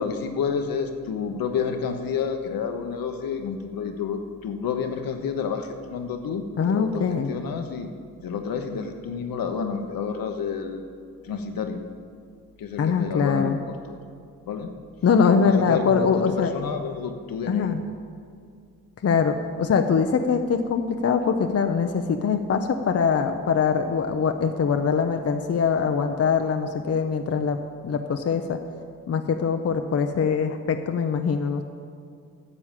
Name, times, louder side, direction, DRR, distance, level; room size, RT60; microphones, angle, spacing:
voice 1, 0.0-7.9 8.2-10.8 11.2-11.8 12.6-13.6 13.9-14.0 14.5-14.7 15.3-17.7, left 6 dB, 65° left, 6 dB, 1.1 m, -29 dB
voice 2, 6.6-7.3 12.8-13.6 15.0-16.5 17.5-17.8 19.0-27.6 27.8-28.6 29.1-31.6, left 6 dB, 40° left, 6 dB, 0.7 m, -23 dB
9.8 x 6.9 x 7.5 m, 2.2 s
supercardioid pair, 60°, 37 cm